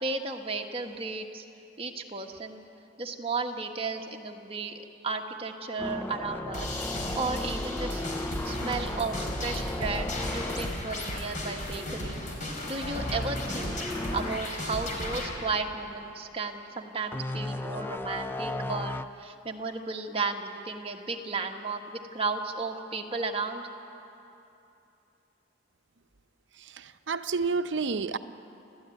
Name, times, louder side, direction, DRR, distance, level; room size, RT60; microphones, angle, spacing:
voice 1, 0.0-1.4 1.8-2.6 3.0-4.7 5.0-6.8 7.1-8.0 8.4-12.2 12.6-13.8 14.1-23.7, right 3 dB, 30° right, 3 dB, 1.5 m, -34 dB
sound 1, 5.8-11.9 12.1-12.4 12.9-14.4 14.9-15.0 17.1-19.0, left 1 dB, 10° left, 0.4 m, -35 dB
sound 2, 6.5-15.3, left 1 dB, 45° left, 4.1 m, -35 dB
voice 2, 26.7-28.2, right 4 dB, 70° right, 11 dB, 0.7 m, -29 dB
30.0 x 13.0 x 9.2 m, 2.9 s
head